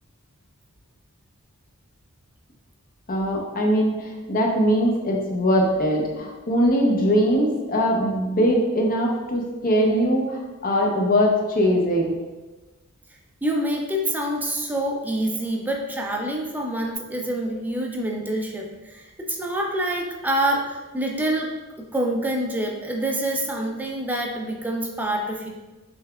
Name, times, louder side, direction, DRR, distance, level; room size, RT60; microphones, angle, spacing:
voice 1, 3.1-12.2, equal, 40° left, 0 dB, 0.7 m, -21 dB
voice 2, 13.4-21.5 21.9-25.5, right 1 dB, 10° right, 0 dB, 0.5 m, -26 dB
5.4 x 3.3 x 2.3 m, 1.2 s
head